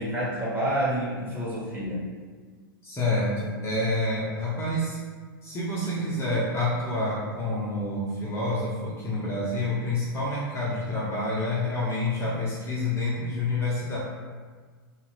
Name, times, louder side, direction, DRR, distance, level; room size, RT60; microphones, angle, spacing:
voice 1, 0.0-2.0, right 1 dB, 15° right, -8 dB, 1.1 m, -28 dB
voice 2, 2.8-5.0 5.4-14.0, left 2 dB, 20° left, -7 dB, 0.6 m, -28 dB
2.7 x 2.4 x 3.0 m, 1.5 s
hypercardioid pair, 100°, 12 cm